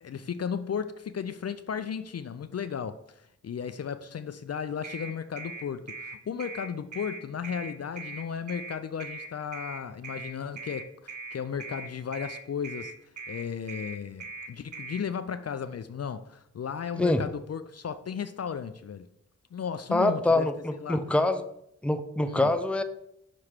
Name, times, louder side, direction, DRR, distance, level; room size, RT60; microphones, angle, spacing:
voice 1, 0.0-3.0 3.4-12.9 13.3-19.1 19.5-21.0 22.3-22.5, left 7 dB, 55° left, 0.4 m, -35 dB
sound 1, 4.8-15.0, right 3 dB, 65° right, 1.1 m, -40 dB
voice 2, 19.9-21.4 21.8-22.8, left 2 dB, 5° left, 0.6 m, -25 dB
6.0 x 3.2 x 5.7 m
cardioid pair, 45°, 31 cm